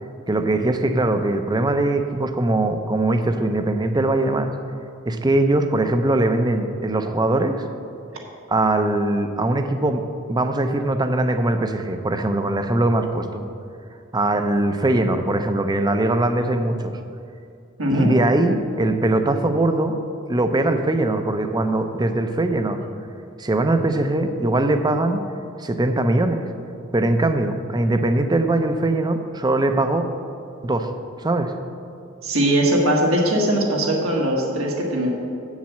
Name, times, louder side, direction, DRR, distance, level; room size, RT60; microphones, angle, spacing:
voice 1, 0.3-4.5 5.0-7.6 8.5-10.0 10.3-13.4 14.1-17.0 17.9-20.0 20.3-22.8 23.4-25.2 25.6-26.4 26.9-30.1 30.6-30.9 31.2-31.5, right 2 dB, 20° right, 7 dB, 0.6 m, -21 dB
voice 2, 17.8-18.1 32.2-35.1, right 1 dB, 75° right, -1 dB, 1.7 m, -20 dB
7.4 x 7.4 x 7.4 m, 2.5 s
head